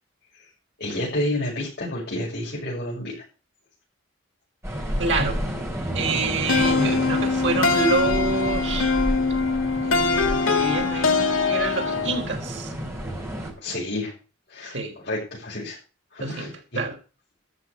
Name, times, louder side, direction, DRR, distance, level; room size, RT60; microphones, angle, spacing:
voice 1, 0.8-3.2 13.6-14.1 14.5-14.8 15.0-15.8 16.1-16.8, left 1 dB, 55° left, -7 dB, 7.1 m, -30 dB
sound 1, 4.6-13.5, equal, 15° right, 4.5 m, -31 dB
voice 2, 5.0-5.4 5.9-8.9 9.8-12.7 14.6-14.9 16.2-16.9, right 3 dB, 65° right, 2 dB, 4.3 m, -27 dB
sound 2, 6.5-12.3, left 4 dB, 90° left, 1.8 m, -23 dB
13.5 x 6.9 x 8.2 m, 0.35 s
head